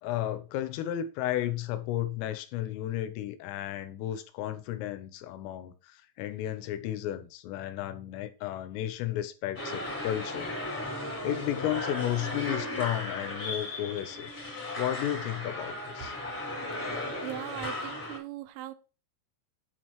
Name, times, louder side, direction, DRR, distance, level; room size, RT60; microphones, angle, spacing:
voice 1, 0.0-10.5 11.2-14.3 14.8-16.1, left 12 dB, 85° left, 3.3 m, -33 dB
sound 1, 9.5-18.2, left 1 dB, 25° left, 1.5 m, -36 dB
voice 2, 17.2-18.7, right 13 dB, 85° right, 3.3 m, -39 dB
7.6 x 6.4 x 3.0 m
omnidirectional pair, 5.8 m